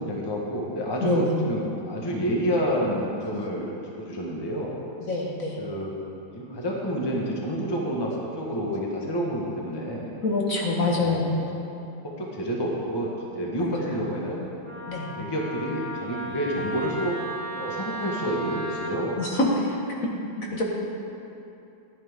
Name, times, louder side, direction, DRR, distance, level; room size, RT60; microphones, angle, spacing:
voice 1, 0.0-4.8 5.6-5.9 6.3-10.1 10.9-11.2 12.0-14.5 15.2-17.2 17.5-19.2, equal, 15° left, -2 dB, 1.1 m, -29 dB
voice 2, 1.0-1.4 5.1-5.6 10.2-11.3 13.6-13.9 14.9-15.1 19.2-19.5 20.0-20.1 20.4-20.6, left 2 dB, 45° left, -2 dB, 1.7 m, -26 dB
Wind instrument woodwind instrument, 14.6-19.0, right 1 dB, 65° right, 2.4 m, -35 dB
15.0 x 10.5 x 3.6 m, 2.7 s
omnidirectional pair, 2.2 m